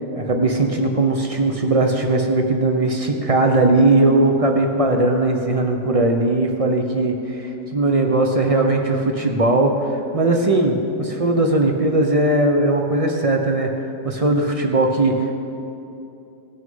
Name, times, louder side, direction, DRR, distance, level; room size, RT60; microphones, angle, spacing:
voice 1, 0.2-15.4, right 2 dB, 40° right, 3 dB, 0.4 m, -19 dB
17.5 x 6.4 x 5.5 m, 2.8 s
omnidirectional pair, 1.9 m